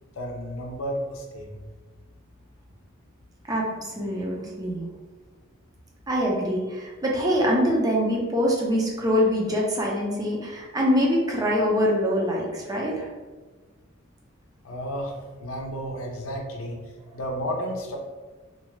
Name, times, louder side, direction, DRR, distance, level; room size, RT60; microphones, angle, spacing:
voice 1, 0.2-1.6 14.6-16.8 17.1-18.0, equal, 90° left, 0 dB, 0.6 m, -32 dB
voice 2, 3.5-4.8 6.1-13.1, equal, 20° right, -3 dB, 0.5 m, -24 dB
2.6 x 2.3 x 2.9 m, 1.3 s
head